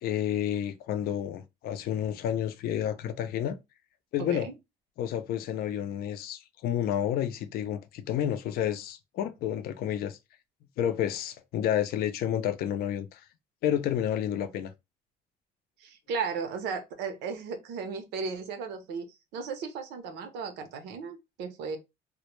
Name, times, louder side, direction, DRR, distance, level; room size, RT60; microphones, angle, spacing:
voice 1, 0.0-3.6 4.1-4.5 5.0-10.2 10.8-13.2 13.6-14.7, left 10 dB, 65° left, 0.4 m, -30 dB
voice 2, 4.2-4.5 15.8-19.0 19.3-21.8, right 5 dB, 85° right, 0.6 m, -35 dB
2.1 x 2.1 x 3.0 m
cardioid pair, 110°, 17 cm